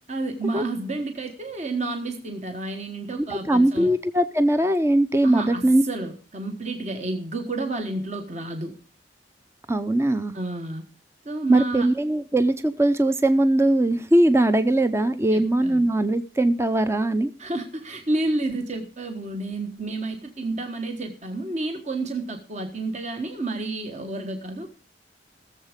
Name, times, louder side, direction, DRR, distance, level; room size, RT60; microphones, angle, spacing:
voice 1, 0.1-3.9 5.2-8.7 10.3-10.8 11.2-11.9 15.3-15.9 17.4-24.7, right 2 dB, 40° right, 4 dB, 1.4 m, -30 dB
voice 2, 3.2-5.8 9.7-10.3 11.5-17.3, right 1 dB, 15° right, 10 dB, 0.6 m, -20 dB
18.0 x 7.3 x 5.1 m, 0.37 s
head